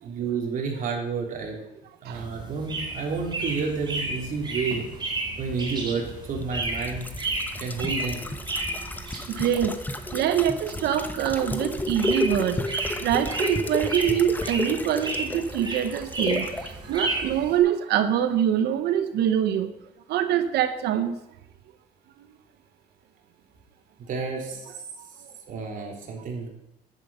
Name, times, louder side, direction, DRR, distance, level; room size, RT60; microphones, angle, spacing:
voice 1, 0.0-1.6 2.0-4.8 5.4-7.1 7.6-8.3 24.0-24.7 25.5-26.5, right 5 dB, 55° right, 0 dB, 3.7 m, -30 dB
sound 1, 2.1-17.6, right 2 dB, 25° right, 3.9 m, -33 dB
sound 2, 6.4-16.7 17.0-17.1, left 1 dB, 10° left, 1.0 m, -32 dB
voice 2, 9.3-9.8 10.1-19.7 20.1-21.1, right 10 dB, 75° right, 9 dB, 1.0 m, -25 dB
10.5 x 10.5 x 5.7 m, 0.87 s
cardioid pair, 110°, 17 cm